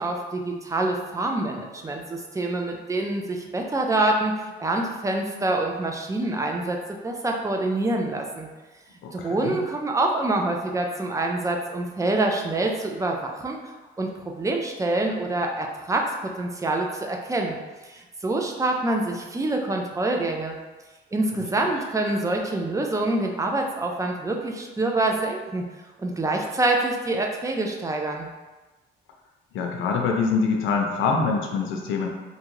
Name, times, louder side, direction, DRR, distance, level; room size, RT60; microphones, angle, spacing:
voice 1, 0.0-6.8 7.0-8.5 9.1-13.7 14.0-14.1 14.4-17.6 17.8-20.6 21.1-25.7 26.0-28.3, right 2 dB, 15° right, 1 dB, 0.4 m, -26 dB
voice 2, 9.0-9.6 21.3-21.4 29.5-32.1, left 4 dB, 90° left, 2 dB, 0.5 m, -25 dB
2.7 x 2.4 x 3.0 m, 1.2 s
cardioid pair, 90°, 20 cm